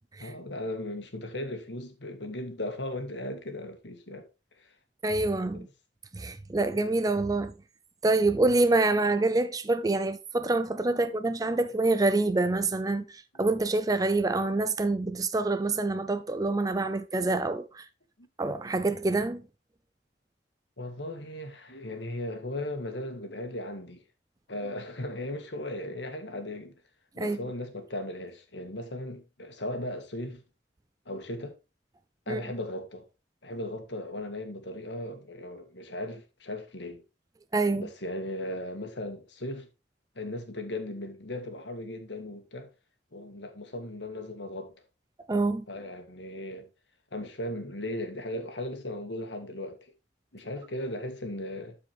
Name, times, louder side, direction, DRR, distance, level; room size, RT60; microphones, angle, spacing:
voice 1, 0.2-4.3 4.6-4.7 5.5-5.7 8.4-8.6 10.9-11.1 18.2-18.3 20.8-24.0 24.5-26.8 27.2-30.4 31.1-31.6 32.3-33.1 33.4-37.0 37.7-39.7 40.2-42.7 43.1-44.8 45.7-46.7 47.1-49.9 50.3-51.8, left 1 dB, 75° left, 1.9 m, -37 dB
voice 2, 5.0-5.7 6.1-7.5 8.0-17.9 18.4-19.4 27.2-27.4 32.3-32.4 37.5-37.9 45.3-45.6, right 2 dB, 20° right, 0.4 m, -26 dB
12.0 x 5.0 x 3.4 m
head